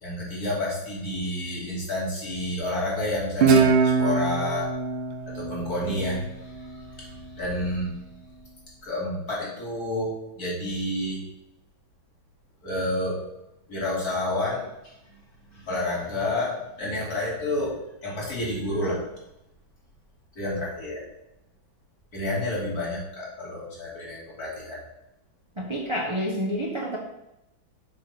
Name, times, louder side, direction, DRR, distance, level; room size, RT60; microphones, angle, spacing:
voice 1, 0.0-4.7 5.3-7.9 8.8-11.2 12.6-13.2 13.7-15.2 15.5-19.0 20.3-21.0 22.1-24.8, left 1 dB, 45° left, -6 dB, 3.3 m, -30 dB
Guitar, 3.4-6.6, right 5 dB, 80° right, 1.7 m, -23 dB
voice 2, 25.6-27.0, equal, 25° right, -2 dB, 0.6 m, -28 dB
6.9 x 4.4 x 6.0 m, 0.88 s
omnidirectional pair, 2.2 m